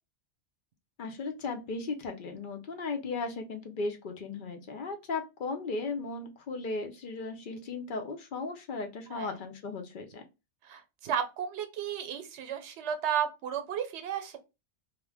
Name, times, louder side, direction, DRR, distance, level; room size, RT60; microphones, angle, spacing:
voice 1, 1.0-10.2, left 3 dB, 55° left, 0.6 m, -36 dB
voice 2, 10.7-14.4, right 8 dB, 80° right, 0.9 m, -33 dB
2.4 x 2.1 x 3.3 m
omnidirectional pair, 1.1 m